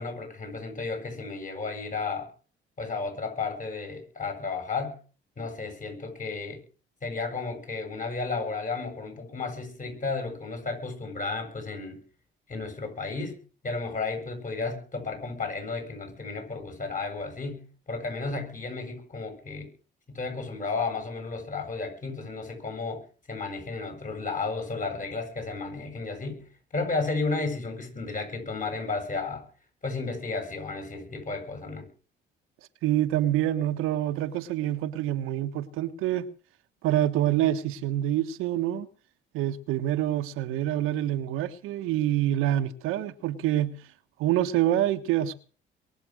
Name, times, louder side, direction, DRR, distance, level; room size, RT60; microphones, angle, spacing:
voice 1, 0.0-2.3 2.8-5.0 5.4-6.6 7.0-12.0 12.5-13.4 13.6-19.7 20.1-23.0 23.3-26.4 26.7-29.4 29.8-31.9, left 4 dB, 40° left, 8.0 m, -33 dB
voice 2, 32.8-36.3 36.8-38.9 39.3-43.8 44.2-45.3, right 12 dB, 80° right, 1.3 m, -26 dB
23.0 x 7.7 x 6.3 m
supercardioid pair, 70°, 21 cm